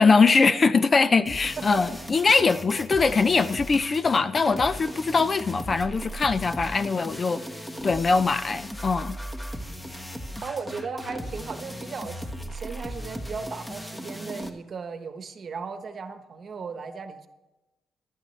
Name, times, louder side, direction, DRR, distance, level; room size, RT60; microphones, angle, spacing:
voice 1, 0.0-7.4 7.8-9.2, left 4 dB, 35° left, 0.5 m, -22 dB
sound 1, 1.3-14.5, equal, 15° left, 1.4 m, -37 dB
voice 2, 10.4-17.3, right 5 dB, 45° right, 1.1 m, -36 dB
15.5 x 11.5 x 3.3 m
cardioid pair, 90°, 0 cm